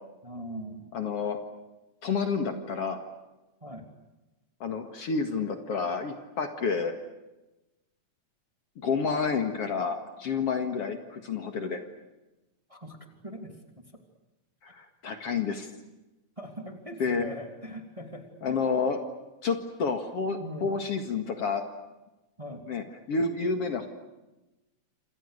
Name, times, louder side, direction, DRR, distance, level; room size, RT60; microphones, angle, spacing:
voice 1, 0.2-0.9 3.6-3.9 12.7-13.0 13.2-13.8 16.4-18.6 20.4-20.8 22.4-22.7, equal, 10° right, 4 dB, 2.7 m, -41 dB
voice 2, 0.9-1.4 2.0-3.0 4.6-6.9 8.8-11.8 14.7-15.7 17.0-17.3 18.4-19.0 19.4-21.6 22.7-23.9, left 5 dB, 55° left, 6 dB, 2.7 m, -29 dB
28.0 x 27.5 x 6.7 m, 1.0 s
omnidirectional pair, 3.4 m